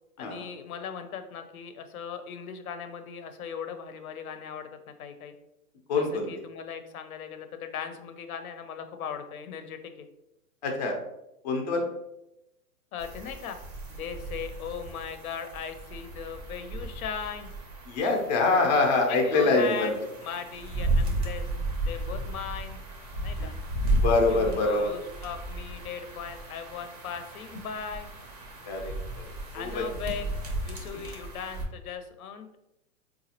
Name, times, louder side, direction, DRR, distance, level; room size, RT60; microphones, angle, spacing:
voice 1, 0.2-4.7 5.0-5.3 5.9-10.1 12.9-13.6 13.9-17.5 19.1-19.9 20.2-21.5 21.9-22.8 23.2-23.5 24.3-28.1 29.5-30.3 30.7-32.6, left 7 dB, 85° left, 8 dB, 0.6 m, -38 dB
voice 2, 5.9-6.3 10.6-10.9 11.4-11.9 17.9-19.9 23.4-23.5 23.9-24.9 28.7-28.9 29.5-29.8, left 3 dB, 35° left, 1 dB, 0.4 m, -24 dB
sound 1, 13.0-31.7, right 1 dB, 30° right, 0.4 m, -34 dB
4.0 x 2.3 x 2.8 m, 0.87 s
hypercardioid pair, 160°, 42 cm